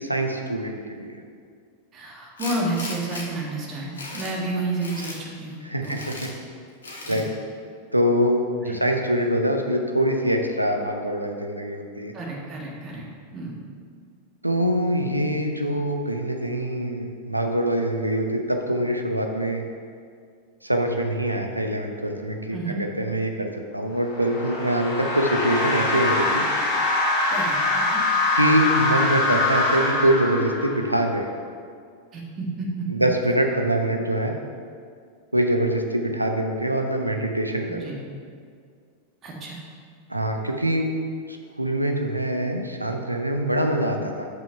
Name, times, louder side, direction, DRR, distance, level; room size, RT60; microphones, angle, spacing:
voice 1, 0.0-1.2 5.6-6.3 7.1-7.3 7.9-12.1 14.4-19.6 20.6-26.4 28.3-31.3 32.9-34.3 35.3-37.9 40.1-40.9 41.3-44.3, right 1 dB, 85° right, 3 dB, 0.7 m, -24 dB
voice 2, 1.9-6.0 7.0-7.3 8.6-8.8 12.1-13.0 13.3-13.6 22.5-22.8 27.3-28.0 32.1-33.1 37.7-38.0 39.2-39.6, right 2 dB, 30° right, -2 dB, 1.7 m, -31 dB
Tools, 2.4-3.2 3.7-4.4 4.8-5.2 5.8-6.3 6.8-7.2, left 2 dB, 70° left, 1.3 m, -36 dB
sound 1, 23.9-31.0, left 2 dB, 45° left, 1.9 m, -23 dB
6.0 x 5.6 x 5.6 m, 2.1 s
figure-of-eight pair, 90°, 0 cm